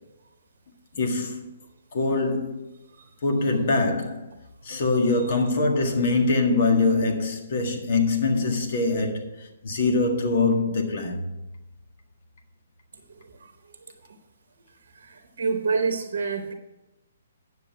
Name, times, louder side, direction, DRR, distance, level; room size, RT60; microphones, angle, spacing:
voice 1, 0.9-1.5 1.9-2.7 3.2-4.3 4.6-11.2, left 3 dB, 50° left, 1.8 m, -23 dB
voice 2, 15.0-16.5, right 4 dB, 60° right, 1.0 m, -27 dB
9.8 x 6.6 x 5.8 m
figure-of-eight pair, 130°, 0 cm